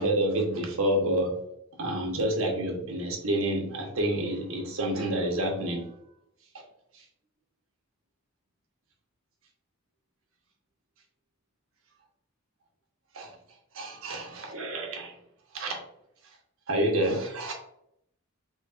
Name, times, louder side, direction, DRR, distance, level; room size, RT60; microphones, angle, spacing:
voice 1, 0.0-1.3 1.8-5.8 13.1-13.3 13.7-15.1 15.5-15.8 16.7-17.5, right 1 dB, 75° right, 1 dB, 1.1 m, -28 dB
5.3 x 3.1 x 2.4 m, 0.76 s
head